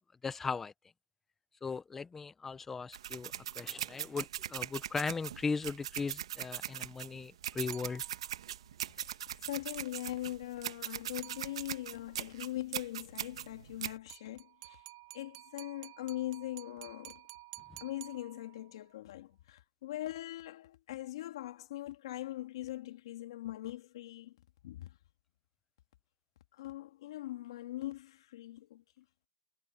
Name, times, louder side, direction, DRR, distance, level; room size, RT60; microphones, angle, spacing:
voice 1, 0.2-0.7 1.6-8.0, left 5 dB, 10° left, 0.9 m, -38 dB
sound 1, 2.9-14.0, right 10 dB, 85° right, 1.7 m, -41 dB
sound 2, 7.7-8.5 11.2-12.0 14.1-18.8, right 19 dB, 45° right, 3.0 m, -52 dB
voice 2, 9.4-14.8 15.1-17.2 17.8-24.4 24.6-25.0 26.5-29.0, left 15 dB, 65° left, 2.5 m, -41 dB
supercardioid pair, 160°, 3 cm